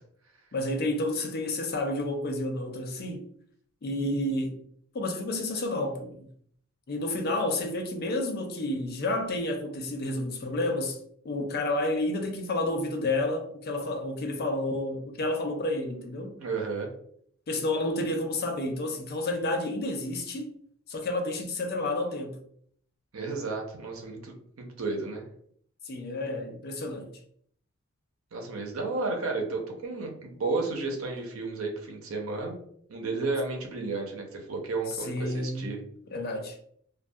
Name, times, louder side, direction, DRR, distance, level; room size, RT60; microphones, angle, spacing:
voice 1, 0.5-3.2 3.8-4.6 4.9-6.3 6.9-11.0 11.2-16.4 17.5-20.5 20.9-22.4 25.9-27.1 35.0-35.6 36.1-36.6, left 2 dB, 50° left, 0.4 m, -30 dB
voice 2, 16.4-16.9 23.1-25.2 28.3-32.5 32.9-35.8, right 3 dB, 80° right, 0.6 m, -32 dB
2.3 x 2.2 x 2.6 m
head